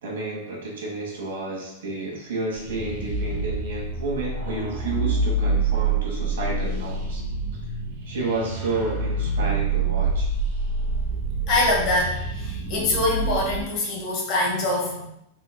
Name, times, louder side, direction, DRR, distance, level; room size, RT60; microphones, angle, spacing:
voice 1, 0.0-7.2 8.1-10.3, right 3 dB, 80° right, -3 dB, 1.3 m, -31 dB
sound 1, 2.5-13.6, right 3 dB, 60° right, 1.2 m, -27 dB
voice 2, 11.4-15.1, left 2 dB, 45° left, -2 dB, 1.3 m, -24 dB
3.9 x 3.0 x 2.2 m, 0.77 s
hypercardioid pair, 115°, 0 cm